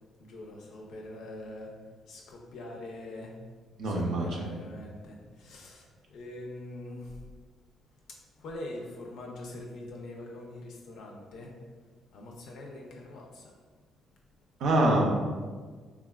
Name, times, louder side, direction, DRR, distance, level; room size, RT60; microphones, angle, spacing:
voice 1, 0.2-1.7 2.1-3.3 3.8-7.2 8.1-11.5 12.1-13.5, left 1 dB, 80° left, 0 dB, 0.5 m, -43 dB
voice 2, 3.8-4.5 14.6-15.0, right 1 dB, 75° right, 0 dB, 0.5 m, -25 dB
3.3 x 2.3 x 2.2 m, 1.5 s
cardioid pair, 90°, 0 cm